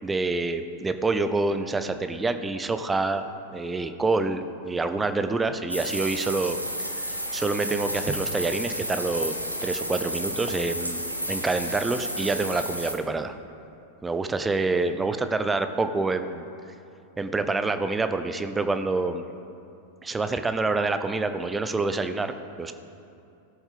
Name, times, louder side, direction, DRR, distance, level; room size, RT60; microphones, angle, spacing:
voice 1, 0.0-6.6 7.0-11.0 11.3-13.3 14.0-16.5 17.2-19.2 20.0-22.3 22.6-22.7, right 3 dB, 10° right, 9 dB, 0.6 m, -27 dB
sound 1, 5.7-12.9, equal, 90° right, 0.9 m, -32 dB
17.5 x 7.2 x 3.7 m, 2.6 s
figure-of-eight pair, 90°, 0 cm